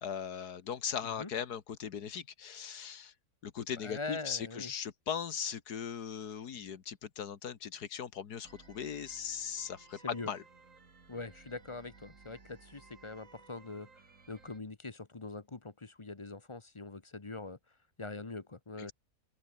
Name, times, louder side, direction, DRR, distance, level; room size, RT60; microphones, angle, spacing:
voice 1, 0.0-3.1 3.4-10.4 18.8-18.9, left 8 dB, 90° left, 1.9 m, -39 dB
voice 2, 3.8-4.7 10.0-10.3 11.1-13.9 14.3-17.6 18.0-18.9, left 3 dB, 20° left, 1.0 m, -43 dB
sound 1, 8.4-14.6, right 4 dB, 55° right, 2.8 m, -58 dB
open air
omnidirectional pair, 1.6 m